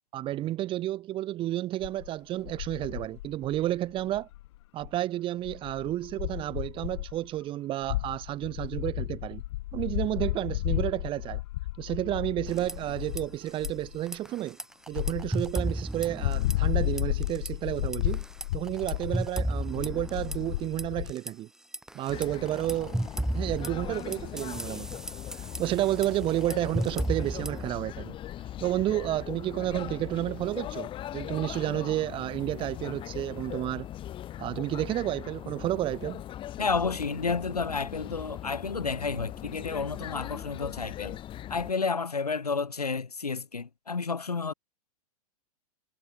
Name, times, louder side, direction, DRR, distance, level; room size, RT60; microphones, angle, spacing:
voice 1, 0.1-4.3 4.7-9.4 9.7-11.4 11.8-14.6 14.9-18.2 18.5-21.5 21.9-23.0 23.3-24.9 25.6-28.2 28.6-33.9 34.4-36.2, right 14 dB, 25° right, 1.4 m, -31 dB
sound 1, 1.8-2.1 2.4-4.6 4.8-4.9 5.4-7.3 7.8-13.3 13.6-14.0 14.9-15.8 16.1-21.1, left 17 dB, 45° left, 0.7 m, -33 dB
sound 2, 12.5-13.2 13.5-13.7 14.1-16.7 17.0-17.5 17.9-21.3 21.7-27.7, right 1 dB, 5° right, 5.6 m, -34 dB
sound 3, 22.1-41.7, left 12 dB, 25° left, 4.8 m, -40 dB
voice 2, 36.6-41.2 41.5-44.5, left 4 dB, 80° left, 1.4 m, -31 dB
figure-of-eight pair, 100°, 20 cm